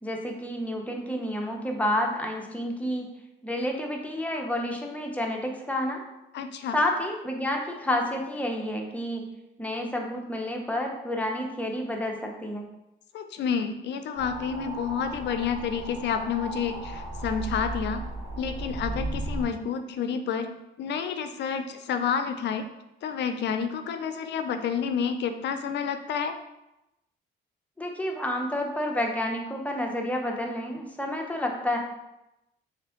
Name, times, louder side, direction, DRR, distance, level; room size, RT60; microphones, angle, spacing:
voice 1, 0.0-3.1 3.4-6.0 6.7-9.3 9.6-12.7 27.8-31.8, left 1 dB, 5° left, 1 dB, 0.6 m, -29 dB
voice 2, 6.3-6.8 13.1-18.0 18.4-20.5 20.8-22.7 23.0-26.4, left 7 dB, 60° left, 8 dB, 0.4 m, -29 dB
sound 1, 14.1-19.5, right 2 dB, 70° right, 1.3 m, -35 dB
3.4 x 2.5 x 3.6 m, 0.92 s
cardioid pair, 90°, 20 cm